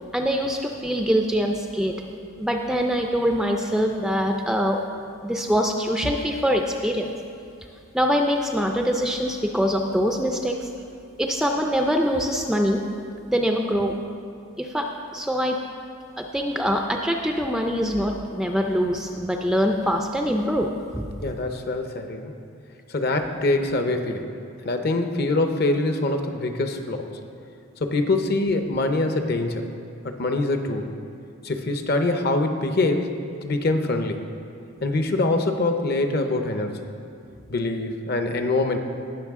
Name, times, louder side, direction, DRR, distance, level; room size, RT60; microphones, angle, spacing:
voice 1, 0.1-1.9 2.4-4.8 5.2-7.1 7.9-10.5 11.2-12.8 13.3-13.9 14.6-14.8 15.1-15.6 16.2-20.7 20.9-21.0, equal, ahead, 2 dB, 0.4 m, -23 dB
voice 2, 21.2-22.3 22.9-24.3 24.6-27.1 27.8-29.7 30.0-30.9 31.4-34.3 34.8-36.9 37.5-38.8, left 2 dB, 45° left, 6 dB, 0.7 m, -24 dB
18.5 x 6.2 x 3.6 m, 2.5 s
head